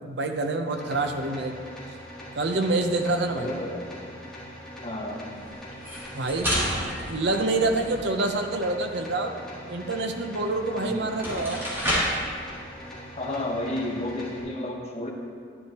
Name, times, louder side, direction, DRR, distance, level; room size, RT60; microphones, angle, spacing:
voice 1, 0.0-1.6 2.3-3.5 6.1-6.5 7.1-9.4 9.7-11.6, right 2 dB, 65° right, 5 dB, 0.8 m, -27 dB
sound 1, 0.7-14.4, equal, 5° left, 2.8 m, -42 dB
voice 2, 3.4-4.0 4.8-5.2 10.8-11.1 13.2-15.1, left 1 dB, 35° left, 0 dB, 1.2 m, -31 dB
sound 2, 5.7-8.1 10.5-10.6 11.1-12.3, equal, 15° right, 2.7 m, -29 dB
11.5 x 11.0 x 3.0 m, 2.1 s
head